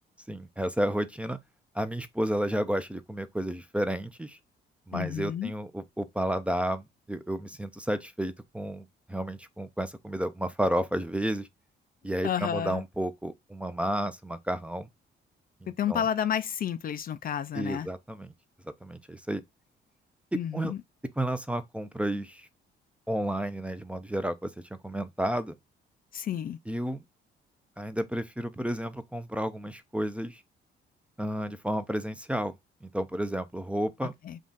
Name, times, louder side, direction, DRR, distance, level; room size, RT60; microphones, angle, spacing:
voice 1, 0.3-1.4 1.7-4.4 4.9-11.5 12.0-14.9 15.6-16.1 17.5-18.3 18.8-19.4 20.5-20.7 21.2-22.5 23.1-24.5 24.8-25.5 26.7-27.0 27.8-30.4 31.2-32.5 32.8-34.1, right 1 dB, 5° right, 0.5 m, -31 dB
voice 2, 4.9-5.5 12.2-12.8 15.8-17.9 20.3-20.8 26.1-26.6 34.3-34.4, left 9 dB, 45° left, 0.4 m, -30 dB
3.6 x 2.4 x 4.0 m
cardioid pair, 90°, 20 cm